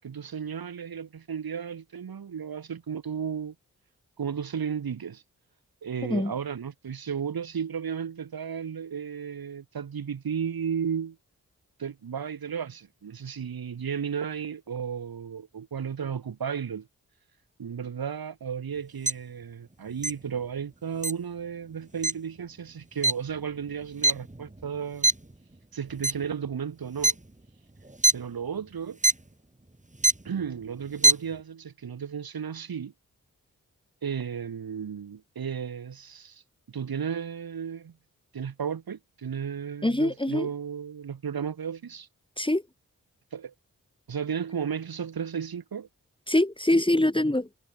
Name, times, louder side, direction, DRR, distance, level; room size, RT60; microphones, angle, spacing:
voice 1, 0.0-3.5 4.2-5.2 5.8-11.2 11.8-16.9 17.6-25.1 25.7-27.2 28.1-29.0 30.2-32.9 34.0-36.4 36.7-38.0 38.3-42.1 43.3-43.5 44.1-45.9, right 7 dB, 85° right, 7.7 m, -34 dB
sound 1, 19.1-19.2 20.0-20.1 21.0-21.1 22.0-22.1 23.0-23.1 23.6-24.7 25.0-25.3 25.9-26.3 27.0-27.1 27.8-28.1 29.0-29.1 29.9-30.3 30.9-31.1, right 2 dB, 20° right, 4.8 m, -22 dB
voice 2, 39.8-40.5 42.4-42.6 46.3-47.5, left 1 dB, 15° left, 3.7 m, -24 dB
cardioid pair, 40°, 35 cm